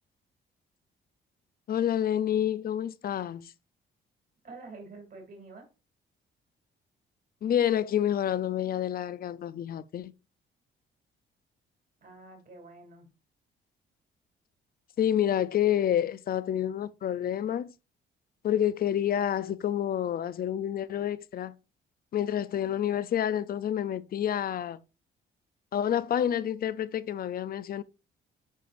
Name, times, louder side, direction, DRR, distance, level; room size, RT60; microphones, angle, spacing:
voice 1, 1.7-3.5 7.4-10.1 15.0-17.7 18.4-21.5 22.1-24.8 25.7-27.8, left 10 dB, 50° left, 0.5 m, -28 dB
voice 2, 4.4-5.7 12.0-13.1, right 3 dB, 50° right, 2.8 m, -47 dB
9.0 x 5.1 x 2.5 m
cardioid pair, 90°, 20 cm